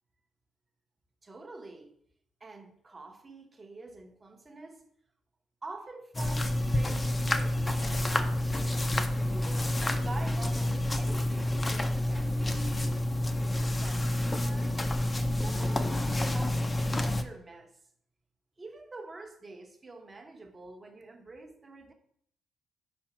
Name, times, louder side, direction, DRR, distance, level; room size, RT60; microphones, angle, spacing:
voice 1, 1.2-1.9 2.4-4.9 5.6-8.5 9.3-13.0 13.7-14.8 15.1-17.8 18.6-21.9, right 3 dB, 25° right, 0.9 m, -46 dB
sound 1, 6.1-17.2, left 1 dB, 20° left, 0.5 m, -29 dB
4.8 x 4.4 x 5.8 m
cardioid pair, 90°, 0 cm